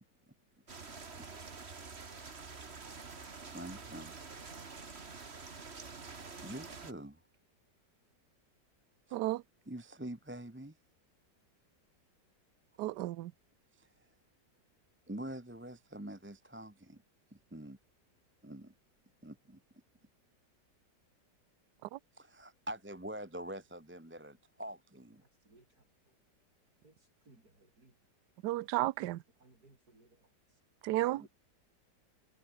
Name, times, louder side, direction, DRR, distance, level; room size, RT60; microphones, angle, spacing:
sound 1, 0.7-6.9, right 4 dB, 35° right, 2.1 m, -47 dB
voice 1, 3.0-4.2 6.1-7.2 9.1-9.2 9.7-10.8 13.7-14.1 15.1-17.0 17.3-17.8 18.4-18.7 19.2-19.6 22.1-25.2 31.0-31.3, right 1 dB, 10° right, 1.0 m, -46 dB
voice 2, 9.1-9.4 12.8-13.3 21.8-22.0 28.4-29.2 30.8-31.2, right 16 dB, 75° right, 1.2 m, -33 dB
voice 3, 25.2-26.2 26.8-28.0 29.4-30.1 30.9-31.3, right 2 dB, 60° right, 6.1 m, -64 dB
omnidirectional pair, 1.9 m